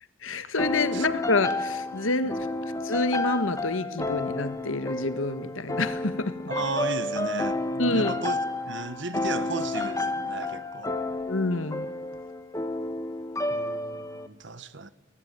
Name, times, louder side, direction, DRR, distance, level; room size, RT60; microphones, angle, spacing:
voice 1, 0.2-2.5 2.8-6.3 7.8-8.1 10.9-11.0 11.3-11.9, left 2 dB, 80° left, 1.7 m, -27 dB
sound 1, 0.6-14.3, left 2 dB, 15° left, 1.5 m, -31 dB
voice 2, 6.5-8.4 8.6-10.9 13.5-14.9, right 3 dB, 60° right, 1.3 m, -35 dB
29.5 x 20.5 x 9.1 m
head